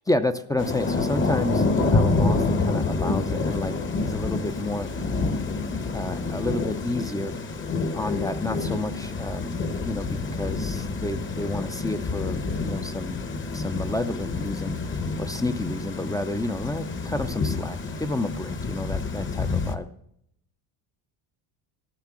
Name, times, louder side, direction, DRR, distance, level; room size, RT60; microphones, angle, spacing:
voice 1, 0.1-4.9 5.7-7.4 7.9-13.2 13.5-14.8 15.2-19.9, left 2 dB, 10° left, 10 dB, 0.4 m, -30 dB
Thunder / Rain, 0.6-19.8, left 3 dB, 25° left, 0.9 m, -28 dB
14.0 x 6.6 x 6.0 m, 0.73 s
cardioid pair, 125°, 50 cm